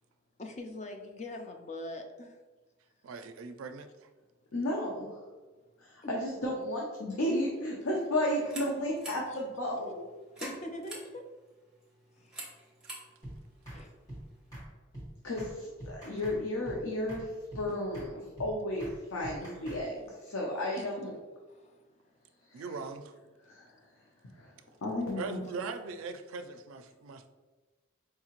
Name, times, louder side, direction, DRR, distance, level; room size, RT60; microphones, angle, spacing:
voice 1, 0.4-2.3 6.0-6.1 10.4-11.2 13.7-13.9 20.8-20.9 21.6-21.7, left 1 dB, 35° left, 4 dB, 0.4 m, -42 dB
voice 2, 3.0-3.9 22.5-23.0 25.2-27.3, right 4 dB, 80° right, 8 dB, 0.4 m, -40 dB
voice 3, 4.5-5.2 5.8-10.1 15.2-21.2 22.5-22.8 23.5-23.7 24.3-24.5 24.8-25.5, left 1 dB, 85° left, -2 dB, 0.7 m, -33 dB
sound 1, 8.3-14.5, right 2 dB, 5° right, 0.8 m, -49 dB
sound 2, 13.2-13.4 13.7-13.8 14.1-14.2 14.5-14.7 14.9-15.1 15.4-15.5 15.8-16.4 16.6-16.8 17.1-17.2 17.5-17.7 17.9-18.1 18.4-18.5 18.8-19.0 19.2-19.8, right 1 dB, 15° left, 1.4 m, -44 dB
4.7 x 2.8 x 2.9 m, 1.3 s
head